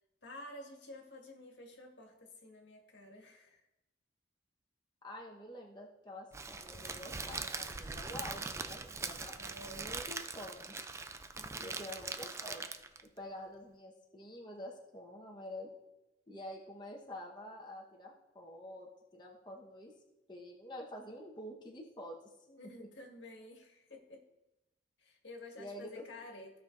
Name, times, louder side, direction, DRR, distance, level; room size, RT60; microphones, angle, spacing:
voice 1, 0.2-3.7 9.4-10.1 11.3-11.8 22.5-24.2 25.0-26.6, left 1 dB, 75° left, 1 dB, 1.7 m, -51 dB
voice 2, 5.0-9.4 9.6-10.9 11.6-12.6 13.2-15.7 16.3-19.9 20.3-22.3 22.8-22.9 25.6-26.0, left 1 dB, 25° left, -2 dB, 1.0 m, -48 dB
Crackle, 6.3-13.1, right 4 dB, 15° right, 0.3 m, -42 dB
15.5 x 5.7 x 2.5 m, 0.95 s
head